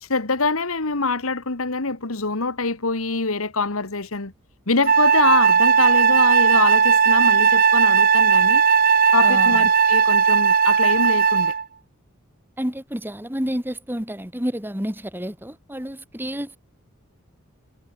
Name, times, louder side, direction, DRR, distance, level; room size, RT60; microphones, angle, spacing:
voice 1, 0.0-4.3 4.7-8.6 9.1-11.5, left 3 dB, 70° left, 1.9 m, -24 dB
Wind instrument woodwind instrument, 4.9-11.6, right 6 dB, 45° right, 1.5 m, -16 dB
voice 2, 9.2-9.7 12.6-16.6, equal, 10° right, 3.5 m, -30 dB
head